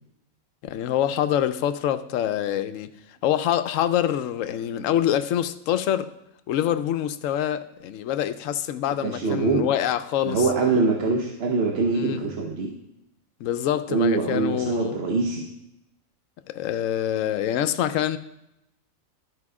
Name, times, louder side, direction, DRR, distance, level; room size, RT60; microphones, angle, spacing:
voice 1, 0.6-2.9 3.2-6.1 6.5-10.5 11.9-12.2 13.4-15.0 16.5-18.2, left 11 dB, 75° left, 0.9 m, -25 dB
voice 2, 9.0-9.7 10.2-12.7 13.9-15.4, right 3 dB, 55° right, 1.0 m, -23 dB
12.5 x 4.9 x 4.8 m
omnidirectional pair, 1.4 m